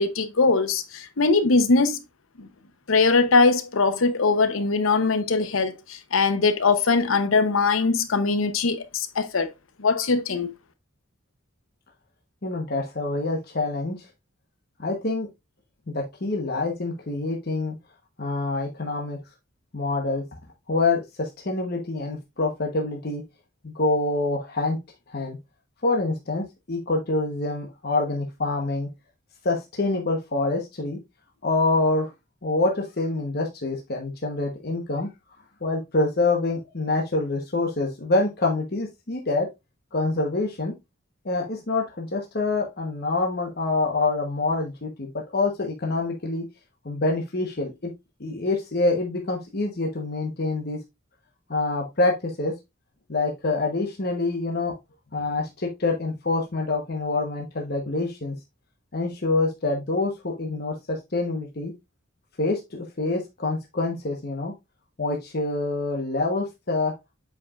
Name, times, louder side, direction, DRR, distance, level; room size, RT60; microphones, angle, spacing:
voice 1, 0.0-2.0 2.4-2.5 2.9-9.5 9.8-10.5, left 4 dB, 90° left, 0.8 m, -21 dB
voice 2, 12.4-14.1 14.8-15.3 15.9-17.7 18.2-19.2 19.7-20.2 20.7-23.2 23.6-24.8 25.1-25.4 25.8-28.9 29.4-31.0 31.4-32.1 32.4-35.1 35.6-39.5 39.9-40.7 41.2-46.4 46.8-47.9 48.2-50.8 51.5-52.5 53.1-54.7 55.1-58.3 58.9-61.7 62.4-64.5 65.0-66.9, left 2 dB, 50° left, 1.1 m, -26 dB
8.1 x 4.9 x 2.4 m
head